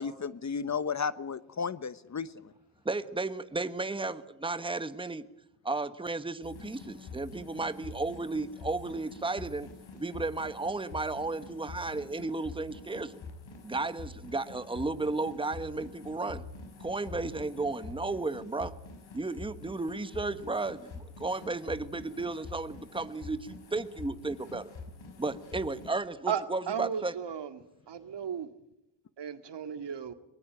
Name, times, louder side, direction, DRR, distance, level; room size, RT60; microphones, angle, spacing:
voice 1, 0.0-2.5, left 5 dB, 35° left, 1.0 m, -34 dB
voice 2, 2.8-5.3 5.6-9.7 9.9-13.2 13.6-16.4 16.8-18.7 19.1-24.7 25.2-27.1, right 3 dB, 10° right, 1.3 m, -34 dB
sound 1, 6.4-25.9, left 3 dB, 65° left, 5.8 m, -46 dB
voice 3, 26.3-27.6 27.9-28.5 29.2-30.1, right 7 dB, 55° right, 2.2 m, -35 dB
22.5 x 19.5 x 9.0 m
cardioid pair, 70°, 48 cm